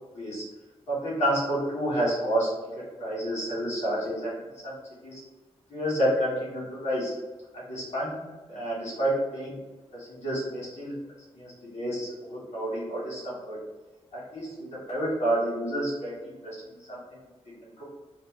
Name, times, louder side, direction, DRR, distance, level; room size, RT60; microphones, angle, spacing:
voice 1, 0.9-2.5 2.7-4.8 5.0-5.2 5.7-7.1 7.5-8.2 8.5-9.6 9.9-10.9 11.3-13.6 14.1-14.5 14.9-16.5 16.9-17.0, right 1 dB, 85° left, -7 dB, 1.2 m, -29 dB
2.7 x 2.1 x 3.0 m, 1.2 s
wide cardioid pair, 85°, 11 cm